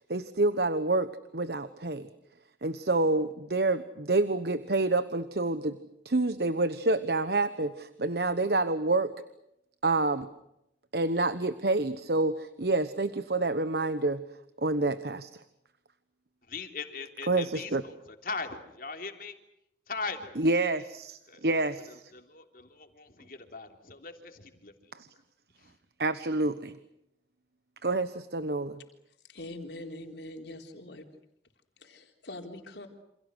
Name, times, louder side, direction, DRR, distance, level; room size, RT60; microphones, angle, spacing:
voice 1, 0.1-2.1 2.6-5.8 6.0-9.1 9.8-10.3 10.9-14.2 14.6-15.3 17.3-17.8 20.4-22.0 24.9-25.1 26.0-26.7 27.8-28.8, right 2 dB, 65° right, 12 dB, 1.1 m, -28 dB
voice 2, 16.5-19.4 19.9-20.4 21.3-21.5 21.9-24.9 25.6-25.8, left 4 dB, 50° left, 5 dB, 3.3 m, -40 dB
voice 3, 29.3-31.0 31.8-32.9, left 1 dB, 80° left, 3 dB, 4.0 m, -43 dB
29.0 x 27.5 x 6.5 m, 0.82 s
head